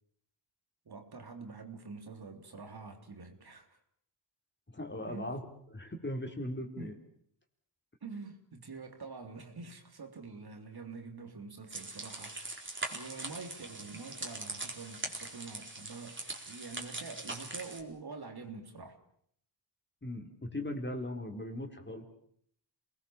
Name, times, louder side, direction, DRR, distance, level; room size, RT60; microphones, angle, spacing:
voice 1, 0.9-3.8 5.0-5.4 6.8-7.0 8.0-12.6 12.9-19.0, right 4 dB, 50° right, 3.6 m, -46 dB
voice 2, 4.7-5.4 5.7-7.0 20.0-22.0, left 1 dB, 20° left, 4.3 m, -38 dB
sound 1, 11.7-17.8, right 2 dB, 25° right, 4.3 m, -42 dB
27.5 x 20.0 x 7.4 m
cardioid pair, 85°, 48 cm